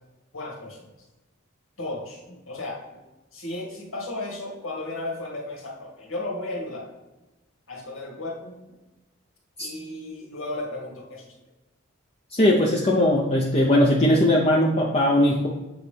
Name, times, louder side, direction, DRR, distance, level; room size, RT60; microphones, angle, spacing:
voice 1, 0.3-0.9 1.8-2.8 3.3-6.9 7.7-8.8 9.6-11.3, left 2 dB, 85° left, -3 dB, 2.2 m, -34 dB
voice 2, 12.3-15.5, left 1 dB, 30° left, -3 dB, 0.7 m, -19 dB
7.9 x 4.1 x 3.4 m, 1.1 s
head